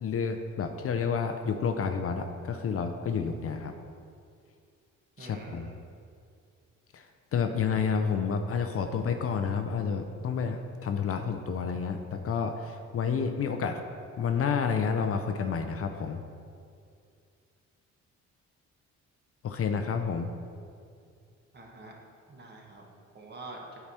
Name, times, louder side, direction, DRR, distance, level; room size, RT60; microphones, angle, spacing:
voice 1, 0.0-3.7 5.2-5.7 6.9-7.1 7.3-13.8 14.2-16.2 19.4-20.3, left 6 dB, 50° left, 6 dB, 0.6 m, -30 dB
voice 2, 5.2-5.7 21.5-22.0 22.3-22.8 23.1-23.7, right 2 dB, 35° right, -1 dB, 1.4 m, -46 dB
8.7 x 4.7 x 4.3 m, 2.3 s
cardioid pair, 90°, 30 cm